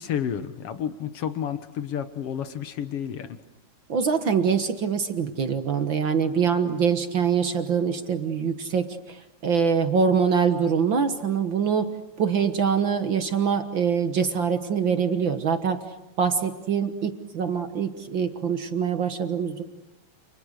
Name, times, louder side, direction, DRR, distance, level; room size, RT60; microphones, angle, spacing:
voice 1, 0.0-3.4, left 9 dB, 65° left, 11 dB, 1.5 m, -31 dB
voice 2, 3.9-15.8 16.2-19.6, right 6 dB, 60° right, 8 dB, 1.3 m, -24 dB
30.0 x 30.0 x 6.6 m, 0.89 s
omnidirectional pair, 4.1 m